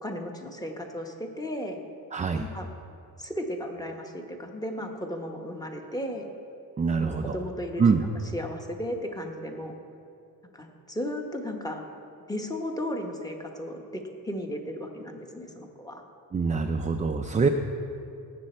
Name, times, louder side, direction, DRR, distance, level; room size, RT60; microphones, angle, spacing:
voice 1, 0.0-1.8 2.4-2.7 3.2-6.3 6.9-9.7 10.5-11.8 12.3-16.0, equal, 10° left, 3 dB, 1.0 m, -35 dB
voice 2, 2.1-2.4 6.8-7.3 7.8-8.0 16.3-17.5, right 5 dB, 20° right, 5 dB, 0.4 m, -24 dB
18.0 x 7.5 x 4.3 m, 2.7 s
cardioid pair, 140°, 37 cm